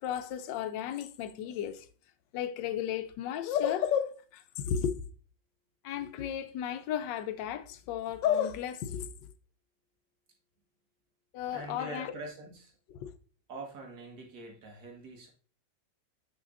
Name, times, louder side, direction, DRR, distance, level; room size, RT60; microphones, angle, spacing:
voice 1, 0.0-1.9 2.3-5.0 5.8-9.3 11.3-12.1 12.9-13.1, left 9 dB, 80° left, 1.2 m, -33 dB
voice 2, 11.5-12.7 13.5-15.3, right 3 dB, 65° right, 2.0 m, -44 dB
6.5 x 6.2 x 2.5 m
omnidirectional pair, 2.0 m